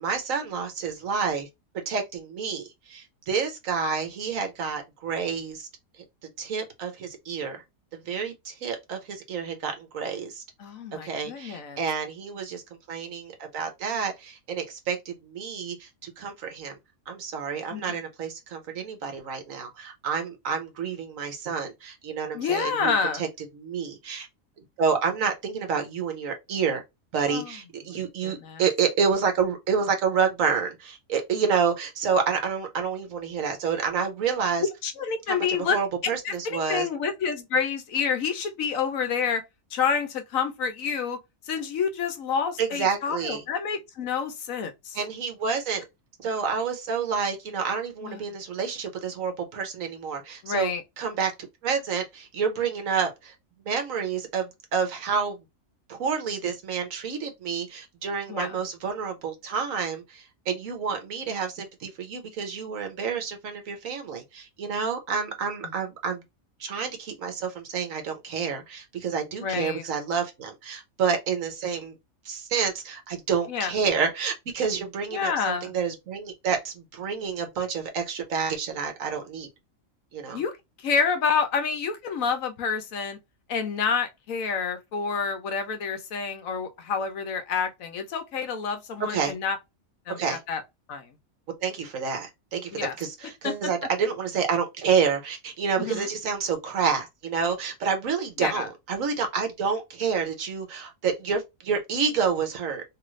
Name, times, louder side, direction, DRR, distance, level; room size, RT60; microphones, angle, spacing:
voice 1, 0.0-1.5 1.7-5.7 6.4-7.6 7.9-10.4 11.0-12.6 12.9-16.8 17.1-23.3 23.6-24.3 24.8-26.8 27.1-34.7 35.3-36.9 42.6-43.4 44.9-45.8 46.2-50.7 51.0-51.3 51.6-53.3 53.6-55.4 55.9-66.2 66.6-71.9 72.2-79.5 80.1-80.4 89.1-89.3 90.2-90.4 91.6-92.7 93.0-102.8, right 6 dB, 70° right, 1.3 m, -29 dB
voice 2, 10.6-11.8 17.7-18.0 22.3-23.2 27.3-27.6 27.9-28.6 34.8-35.8 36.2-39.4 39.7-41.2 41.5-45.0 48.0-48.2 50.4-50.8 58.3-58.6 65.6-65.7 69.4-69.8 73.5-73.7 75.1-75.7 80.3-80.5 80.8-83.2 83.5-89.6 90.1-90.6 90.9-91.1 92.7-92.9 93.4-93.7 95.8-96.1 98.4-98.7, left 6 dB, 75° left, 1.1 m, -28 dB
3.1 x 2.5 x 3.1 m
omnidirectional pair, 1.5 m